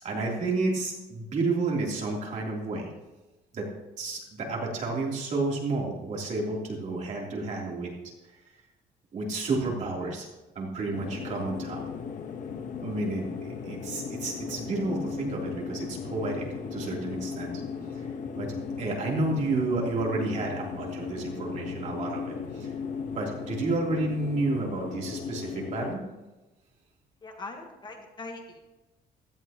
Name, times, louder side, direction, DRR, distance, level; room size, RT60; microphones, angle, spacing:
voice 1, 0.0-2.9 3.5-3.7 4.0-7.9 9.1-10.3 10.5-11.8 12.8-17.6 17.9-22.7 23.1-26.0, right 3 dB, 45° right, -2 dB, 3.3 m, -31 dB
sound 1, 10.9-26.0, left 5 dB, 50° left, 1.2 m, -36 dB
voice 2, 27.2-28.7, left 3 dB, 25° left, 3 dB, 1.4 m, -41 dB
16.5 x 13.5 x 3.0 m, 1.1 s
cardioid pair, 150°, 17 cm